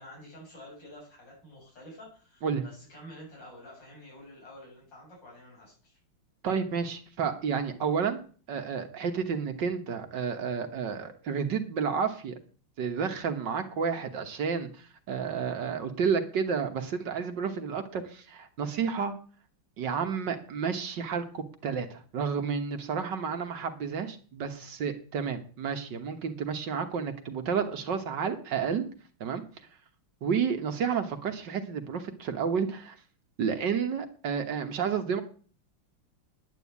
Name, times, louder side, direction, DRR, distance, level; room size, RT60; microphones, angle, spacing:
voice 1, 0.0-6.0, equal, 55° left, -4 dB, 8.1 m, -49 dB
voice 2, 6.4-8.2 8.5-12.4 12.8-19.1 19.8-28.9 29.2-29.4 30.2-33.0 33.4-35.2, right 6 dB, 60° right, 7 dB, 1.8 m, -31 dB
10.5 x 9.2 x 8.4 m, 0.42 s
omnidirectional pair, 2.3 m